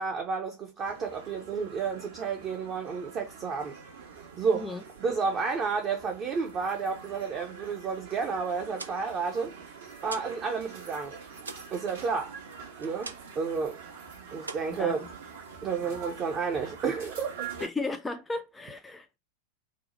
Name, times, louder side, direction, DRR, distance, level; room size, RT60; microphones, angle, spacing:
voice 1, 0.0-3.8 4.4-4.7 5.0-9.5 10.0-11.2 11.7-12.3 12.8-13.8 14.3-15.1 15.6-17.5, right 5 dB, 30° right, 0.6 m, -31 dB
sound 1, 0.8-17.7, right 6 dB, 60° right, 1.0 m, -45 dB
sound 2, 8.7-10.4 10.7-13.5 13.8-14.1 14.4-15.5, right 3 dB, 80° right, 0.4 m, -44 dB
voice 2, 17.6-19.2, left 3 dB, 10° left, 0.3 m, -35 dB
2.7 x 2.2 x 4.0 m
figure-of-eight pair, 90°, 0 cm